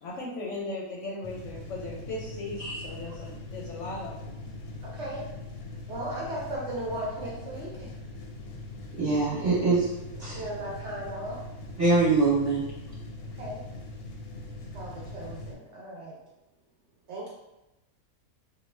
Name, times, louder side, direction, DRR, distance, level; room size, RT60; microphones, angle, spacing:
voice 1, 0.0-4.4, left 2 dB, 65° left, -3 dB, 0.8 m, -37 dB
sound 1, 1.2-15.5, left 2 dB, 85° left, 1.1 m, -41 dB
voice 2, 4.8-5.2 5.9-7.9 10.3-11.4 13.3-13.6 14.7-16.2 17.1-17.3, right 1 dB, 65° right, -5 dB, 0.7 m, -36 dB
voice 3, 9.0-9.9 10.2-10.4 11.8-12.7, right 3 dB, 35° right, -9 dB, 0.8 m, -23 dB
2.3 x 2.2 x 3.1 m, 0.95 s
omnidirectional pair, 1.5 m